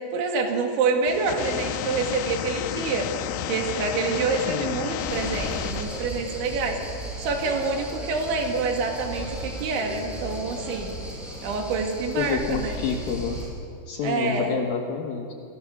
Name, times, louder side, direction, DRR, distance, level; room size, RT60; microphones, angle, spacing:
voice 1, 0.1-3.1 3.5-6.8 7.2-11.0 11.4-12.8 14.0-14.5, right 4 dB, 75° right, 2 dB, 4.6 m, -27 dB
sound 1, 1.1-6.1, left 11 dB, 85° left, 3.4 m, -31 dB
voice 2, 4.5-4.8 12.2-13.4 13.9-15.3, left 6 dB, 65° left, 3 dB, 2.5 m, -28 dB
sound 2, 5.0-13.4, right 1 dB, ahead, 7.5 m, -35 dB
29.0 x 20.0 x 6.2 m, 2.4 s
omnidirectional pair, 5.5 m